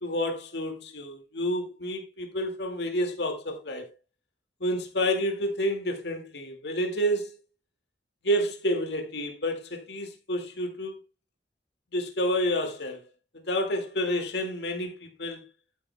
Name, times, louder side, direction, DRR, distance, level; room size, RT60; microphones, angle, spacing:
voice 1, 0.0-3.9 4.6-7.4 8.2-11.0 11.9-13.0 13.3-15.4, equal, 65° left, 2.1 m, -29 dB
11.5 x 10.0 x 2.2 m
head